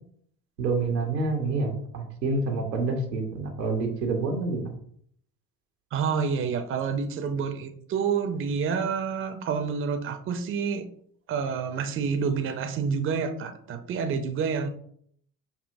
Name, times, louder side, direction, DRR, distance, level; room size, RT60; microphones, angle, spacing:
voice 1, 0.6-4.8, right 3 dB, 85° right, 2 dB, 0.8 m, -28 dB
voice 2, 5.9-10.9 11.3-14.7, right 6 dB, 25° right, 7 dB, 0.5 m, -28 dB
5.4 x 2.7 x 2.6 m, 0.65 s
figure-of-eight pair, 55°, 49 cm